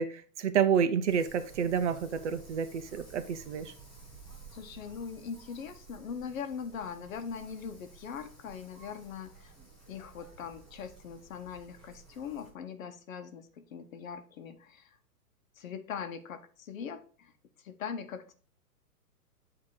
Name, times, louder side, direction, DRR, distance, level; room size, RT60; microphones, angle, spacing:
voice 1, 0.0-3.7, right 7 dB, 45° right, 11 dB, 0.6 m, -29 dB
Wind, 1.1-12.5, right 4 dB, ahead, 0.4 m, -53 dB
voice 2, 4.5-9.5 9.9-15.0 15.6-17.3 17.6-18.3, left 7 dB, 55° left, 8 dB, 1.0 m, -41 dB
8.6 x 2.9 x 4.7 m, 0.41 s
hypercardioid pair, 135°, 48 cm